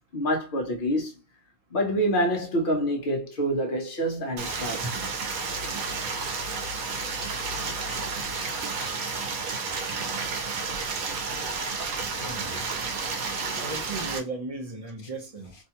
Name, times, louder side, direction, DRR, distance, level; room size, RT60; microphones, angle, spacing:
voice 1, 0.1-1.2 1.7-5.1 13.4-13.7, equal, 45° left, 0.8 m, -27 dB
Stream, 4.4-14.2, right 4 dB, 80° right, 1.1 m, -31 dB
voice 2, 12.2-12.5 13.6-15.5, right 2 dB, 35° right, 0.6 m, -36 dB
2.8 x 2.2 x 2.8 m
omnidirectional pair, 1.5 m